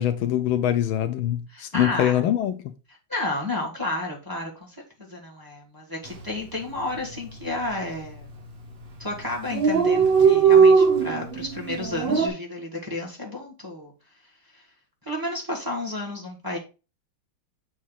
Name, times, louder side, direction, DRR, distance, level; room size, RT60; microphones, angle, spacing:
voice 1, 0.0-2.6, left 11 dB, 75° left, 1.4 m, -23 dB
voice 2, 1.5-2.2 3.1-8.3 9.0-13.9 14.5-14.6 15.0-16.6, left 2 dB, 10° right, 1.5 m, -32 dB
Dog, 6.1-6.3 6.6-6.7 6.9-7.6 8.3-8.5 8.8-8.9 9.1-9.2 9.3-12.3, right 6 dB, 40° right, 0.9 m, -19 dB
7.2 x 3.2 x 5.4 m
omnidirectional pair, 2.3 m